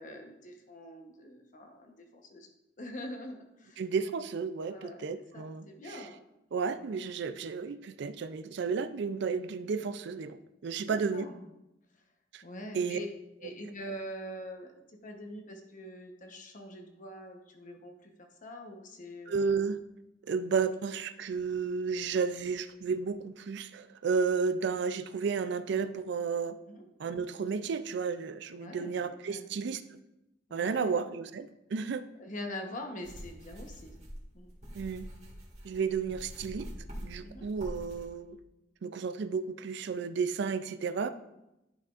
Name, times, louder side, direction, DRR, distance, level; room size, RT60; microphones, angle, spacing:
voice 1, 0.0-2.5 2.8-3.8 4.7-5.0 5.3-6.1 10.8-11.4 12.4-13.1 13.4-14.7 15.0-18.1 18.4-19.3 26.7-26.8 28.6-29.5 30.5-31.0 32.2-33.9 34.3-34.5 37.2-37.5, left 1 dB, 45° left, 4 dB, 1.0 m, -44 dB
voice 2, 3.8-6.1 6.5-11.3 12.3-12.4 12.7-13.0 19.3-19.8 20.3-26.6 27.0-29.8 30.5-32.0 34.7-35.0 35.6-36.7 37.0-38.4 38.8-41.1, right 5 dB, 65° right, 12 dB, 0.4 m, -32 dB
sound 1, 33.0-38.1, equal, 40° right, 1.8 m, -45 dB
10.5 x 5.8 x 2.5 m, 0.91 s
head